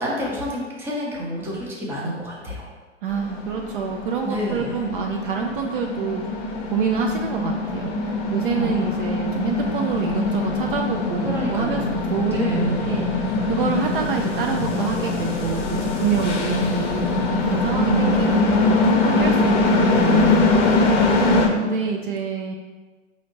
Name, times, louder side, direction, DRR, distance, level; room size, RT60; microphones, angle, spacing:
voice 1, 0.0-2.6 4.2-4.8 8.6-8.9 11.2-13.1 21.2-21.7, equal, 5° right, -4 dB, 0.6 m, -30 dB
voice 2, 3.0-6.2 6.5-22.5, right 6 dB, 50° right, 2 dB, 0.4 m, -27 dB
sound 1, 3.1-21.5, left 3 dB, 40° left, 0.7 m, -22 dB
4.9 x 2.7 x 2.9 m, 1.3 s
hypercardioid pair, 115°, 35 cm